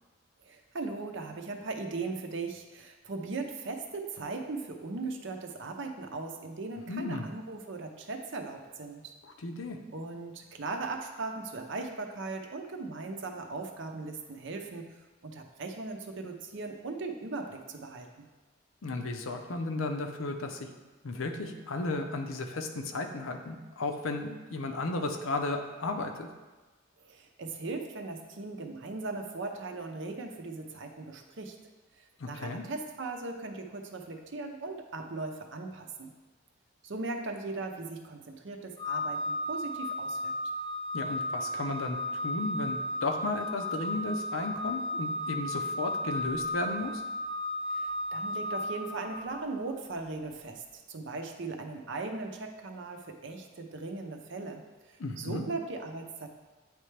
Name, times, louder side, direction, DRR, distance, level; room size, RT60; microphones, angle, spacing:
voice 1, 0.4-9.0 9.9-14.8 15.2-18.3 27.0-31.6 32.0-36.1 36.8-40.3 47.7-50.6 50.9-56.3, right 3 dB, 60° right, 4 dB, 0.7 m, -38 dB
voice 2, 6.9-7.2 9.4-9.8 18.8-20.6 21.0-26.3 32.2-32.6 40.9-46.9 55.0-55.5, left 3 dB, 75° left, 5 dB, 0.6 m, -34 dB
Organ, 38.8-49.5, left 1 dB, 25° left, 0.4 m, -34 dB
9.5 x 3.3 x 3.3 m, 1.2 s
head